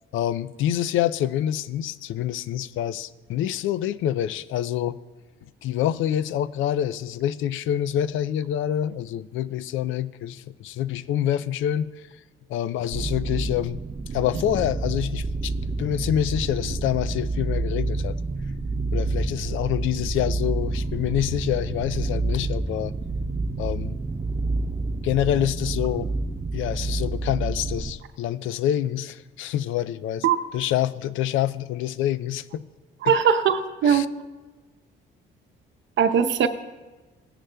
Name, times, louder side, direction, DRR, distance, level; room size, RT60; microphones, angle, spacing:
voice 1, 0.1-5.0 5.6-11.9 12.5-13.8 14.1-15.5 15.8-18.2 18.9-22.9 23.6-24.0 25.0-26.1 26.5-30.3 30.5-32.6 33.0-33.2 33.8-34.1, left 11 dB, 80° left, 16 dB, 0.4 m, -26 dB
sound 1, 12.9-27.9, right 3 dB, 25° right, 0.5 m, -28 dB
voice 2, 33.0-34.0 36.0-36.5, right 7 dB, 70° right, 9 dB, 0.8 m, -20 dB
17.0 x 9.9 x 2.2 m, 1.2 s
cardioid pair, 90°, 20 cm